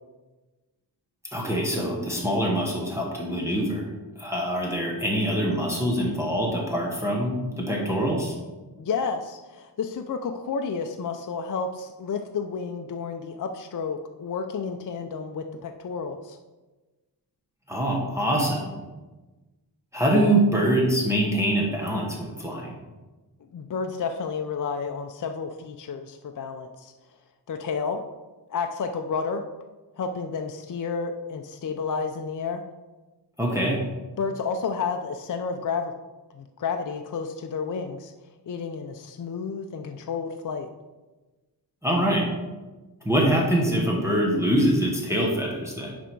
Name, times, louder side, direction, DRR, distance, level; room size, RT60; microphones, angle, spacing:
voice 1, 1.3-3.9 4.2-8.3 17.7-18.7 19.9-22.7 33.4-33.8 41.8-42.3 43.0-45.9, right 1 dB, 5° right, -3 dB, 1.1 m, -24 dB
voice 2, 8.8-16.4 23.5-26.9 27.5-28.0 28.5-29.4 30.0-32.6 34.2-35.9 36.3-38.1 38.5-40.7, left 5 dB, 50° left, 5 dB, 0.5 m, -31 dB
10.0 x 3.4 x 4.5 m, 1.2 s
wide cardioid pair, 125°, 41 cm